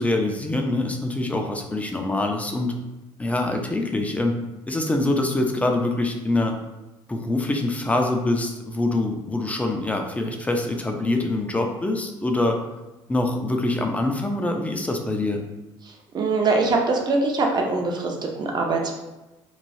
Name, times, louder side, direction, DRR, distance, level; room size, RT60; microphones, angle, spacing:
voice 1, 0.0-2.7 3.2-4.3 4.7-6.5 7.1-12.6 13.1-15.4, left 2 dB, 15° left, 3 dB, 0.4 m, -24 dB
voice 2, 16.1-18.9, right 3 dB, 40° right, 1 dB, 0.6 m, -23 dB
3.1 x 2.2 x 2.6 m, 1.1 s
cardioid pair, 95°, 11 cm